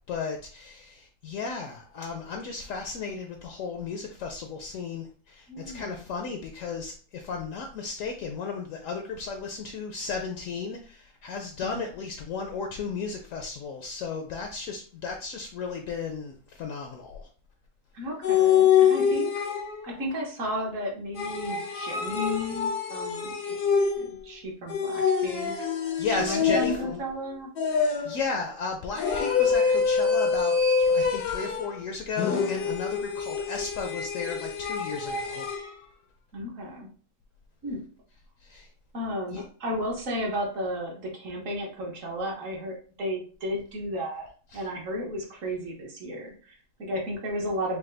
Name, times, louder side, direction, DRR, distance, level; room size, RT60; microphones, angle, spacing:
voice 1, 0.0-17.3 26.0-27.0 27.8-35.5 38.4-38.7 39.3-39.4 44.5-44.7, left 5 dB, 70° left, 3 dB, 0.9 m, -34 dB
voice 2, 5.5-6.0 11.6-11.8 17.9-19.3 19.8-23.7 24.0-25.5 26.1-27.5 36.3-36.9 37.6-37.8 38.9-44.3 44.5-47.8, equal, 60° right, -1 dB, 1.3 m, -33 dB
sound 1, 18.2-20.0 21.2-24.2 24.7-27.0 27.6-28.3 29.0-31.8 32.2-35.7, left 6 dB, 85° left, 1.3 m, -25 dB
4.8 x 2.1 x 3.2 m, 0.42 s
omnidirectional pair, 1.6 m